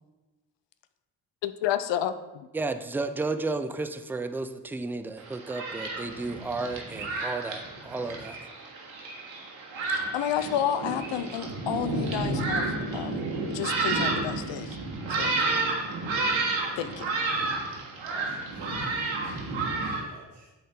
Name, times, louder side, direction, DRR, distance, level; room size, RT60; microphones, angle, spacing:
voice 1, 1.4-2.5 9.9-14.8 15.1-15.3 16.8-17.1, left 10 dB, 70° left, 12 dB, 0.5 m, -31 dB
voice 2, 2.5-8.4, right 3 dB, 5° right, 10 dB, 0.3 m, -33 dB
Thunderstorm, 5.2-20.0, right 3 dB, 80° right, 1.4 m, -31 dB
voice 3, 18.0-20.5, right 1 dB, 65° right, 0 dB, 1.7 m, -49 dB
8.0 x 3.9 x 4.3 m, 1.1 s
supercardioid pair, 55°, 45 cm